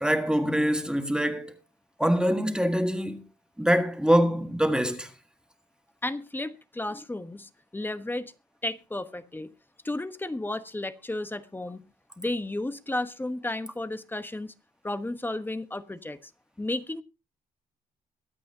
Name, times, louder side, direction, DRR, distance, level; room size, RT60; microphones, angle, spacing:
voice 1, 0.0-1.5 2.0-3.2 3.6-5.1, equal, 5° right, 1.6 m, -24 dB
voice 2, 6.0-8.3 8.6-9.5 9.8-11.8 12.2-14.5 14.8-16.2 16.6-17.0, left 2 dB, 15° left, 1.1 m, -33 dB
23.5 x 8.5 x 2.8 m
cardioid pair, 100°, 16 cm